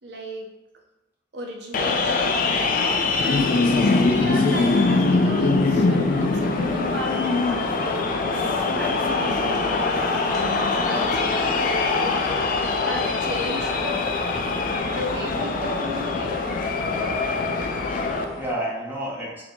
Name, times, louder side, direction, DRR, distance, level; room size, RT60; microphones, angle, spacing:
voice 1, 0.0-0.6 1.3-2.4 3.2-14.0 14.9-16.3, equal, 65° right, 1 dB, 0.7 m, -35 dB
sound 1, 1.7-18.2, left 3 dB, 45° left, 0.4 m, -23 dB
sound 2, 4.1-18.5, left 2 dB, 20° left, 0.9 m, -37 dB
voice 2, 17.9-19.4, right 1 dB, 10° right, -5 dB, 0.9 m, -32 dB
2.8 x 2.8 x 4.2 m, 1.0 s
head